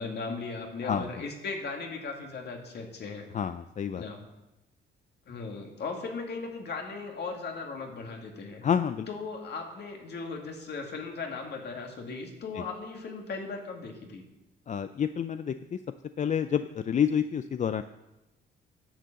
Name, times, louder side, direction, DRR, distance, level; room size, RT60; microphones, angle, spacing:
voice 1, 0.0-3.2 4.0-4.2 5.3-8.6 9.1-14.2, left 4 dB, 55° left, 2 dB, 2.3 m, -37 dB
voice 2, 3.3-4.0 8.6-9.1 12.5-12.6 14.7-15.8 16.2-17.8, left 8 dB, 40° left, 11 dB, 0.4 m, -28 dB
10.0 x 6.8 x 7.5 m, 0.96 s
cardioid pair, 90°, 20 cm